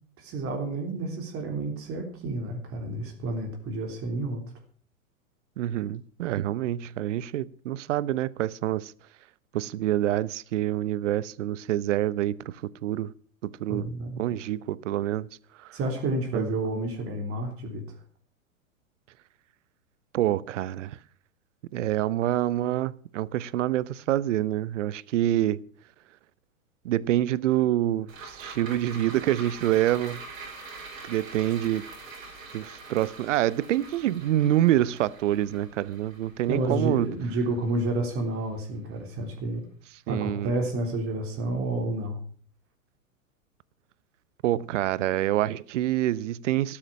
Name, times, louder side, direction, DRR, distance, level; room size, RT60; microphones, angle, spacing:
voice 1, 0.2-4.4 13.7-14.2 15.7-17.8 36.5-39.6 40.1-42.2, right 2 dB, 35° right, 3.5 m, -30 dB
voice 2, 5.6-8.9 9.5-12.5 12.8-13.1 13.4-13.9 14.2-15.3 16.3-16.6 20.1-21.0 21.7-25.6 26.8-30.2 31.1-31.8 32.5-37.1 40.1-40.5 44.4-46.8, right 13 dB, 60° right, 0.9 m, -26 dB
sound 1, 28.1-38.6 39.0-39.1, right 3 dB, 80° right, 6.2 m, -44 dB
13.5 x 12.5 x 6.1 m
hypercardioid pair, 105°, 41 cm